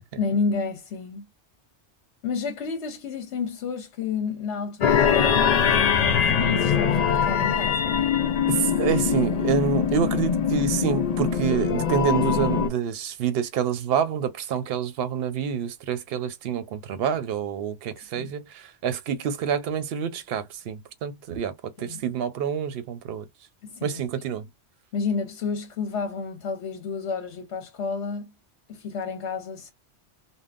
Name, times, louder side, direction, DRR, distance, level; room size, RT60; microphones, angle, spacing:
voice 1, 0.2-1.3 2.2-5.9 6.2-8.0 18.1-18.3 21.8-22.0 23.6-24.0 24.9-28.3 28.7-29.7, left 5 dB, 75° left, 1.0 m, -30 dB
sound 1, 4.8-12.7, left 7 dB, 55° left, 0.4 m, -22 dB
voice 2, 8.5-23.2 23.8-24.5, right 8 dB, 65° right, 0.8 m, -27 dB
3.5 x 2.2 x 2.4 m
omnidirectional pair, 1.2 m